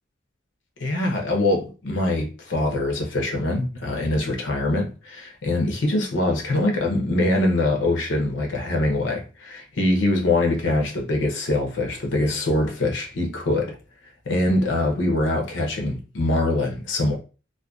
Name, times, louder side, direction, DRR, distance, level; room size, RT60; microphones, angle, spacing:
voice 1, 0.8-13.8 14.3-17.2, left 1 dB, 70° left, 0.6 m, -23 dB
2.5 x 2.2 x 2.2 m
head